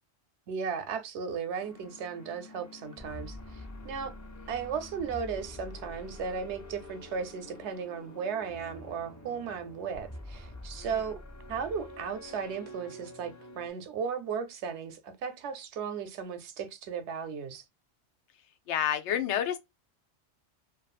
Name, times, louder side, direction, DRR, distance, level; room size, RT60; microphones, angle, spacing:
voice 1, 0.5-4.1 4.5-11.2 11.5-17.6, right 6 dB, 90° right, 0.9 m, -36 dB
sound 1, 1.6-13.7, left 1 dB, 30° left, 0.3 m, -47 dB
voice 2, 18.7-19.6, left 10 dB, 90° left, 0.9 m, -29 dB
2.6 x 2.3 x 2.3 m
omnidirectional pair, 1.1 m